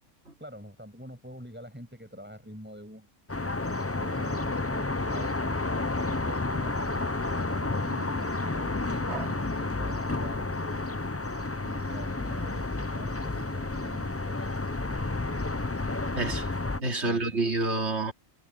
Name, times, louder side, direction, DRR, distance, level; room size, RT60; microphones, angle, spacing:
voice 1, 0.4-3.1 4.0-7.0 7.5-10.8 11.6-14.5 16.8-17.4, equal, 5° right, 7.9 m, -46 dB
sound 1, 3.3-16.8, left 2 dB, 20° left, 0.4 m, -31 dB
voice 2, 16.1-16.5 16.8-18.1, right 2 dB, 55° right, 3.2 m, -28 dB
omnidirectional pair, 1.4 m